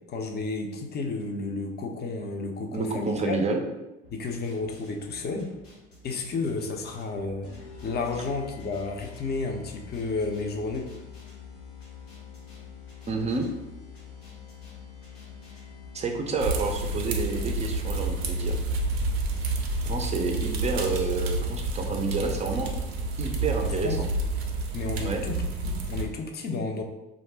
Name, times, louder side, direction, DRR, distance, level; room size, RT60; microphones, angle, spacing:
voice 1, 0.1-3.5 4.1-5.5 6.0-7.5 7.8-10.9 23.6-24.0 24.7-26.8, left 3 dB, 35° left, 4 dB, 0.5 m, -32 dB
voice 2, 2.7-3.6 13.1-13.5 15.9-18.6 19.8-22.7 23.2-24.1 25.0-25.2, right 4 dB, 25° right, 3 dB, 0.4 m, -29 dB
sound 1, 4.0-21.2, left 1 dB, 90° left, 1.0 m, -53 dB
sound 2, 7.4-18.8, left 8 dB, 70° left, 0.7 m, -46 dB
sound 3, 16.4-26.1, right 2 dB, 85° right, 0.5 m, -29 dB
2.5 x 2.0 x 3.3 m, 1.0 s
hypercardioid pair, 70°, 30 cm